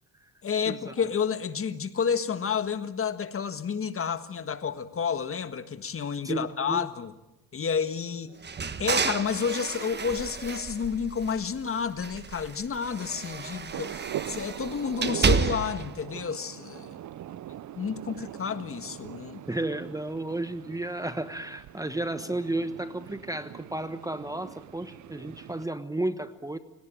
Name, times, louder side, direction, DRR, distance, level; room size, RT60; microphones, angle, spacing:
voice 1, 0.4-7.2 7.5-8.3 8.8-16.9 17.7-19.4, left 6 dB, 35° left, 11 dB, 1.6 m, -30 dB
voice 2, 6.2-6.9 19.5-26.6, right 2 dB, 10° right, 11 dB, 1.1 m, -33 dB
sound 1, 8.4-11.6 12.0-15.9, right 5 dB, 25° right, 1.4 m, -31 dB
sound 2, 13.7-25.7, right 12 dB, 50° right, 0.9 m, -41 dB
28.5 x 18.5 x 9.0 m, 0.96 s
cardioid pair, 95°, 39 cm